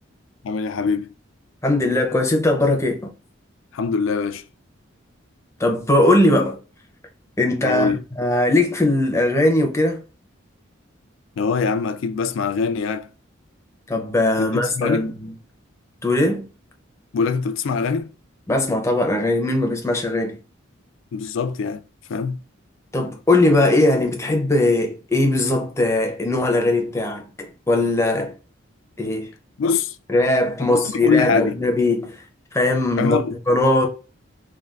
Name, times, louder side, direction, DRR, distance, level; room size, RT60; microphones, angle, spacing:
voice 1, 0.4-1.1 3.7-4.4 7.6-8.0 11.4-13.1 14.4-15.1 17.1-18.1 21.1-21.8 22.1-22.4 29.6-30.0 30.6-31.6 33.0-33.3, left 5 dB, 70° left, 0.3 m, -23 dB
voice 2, 1.6-3.1 5.6-6.6 7.4-10.0 13.9-15.3 16.0-16.5 18.5-20.4 22.9-28.3 29.0-29.3 30.1-32.2 32.5-33.2 33.5-33.9, left 2 dB, 15° left, 0.5 m, -20 dB
3.4 x 2.3 x 2.3 m
head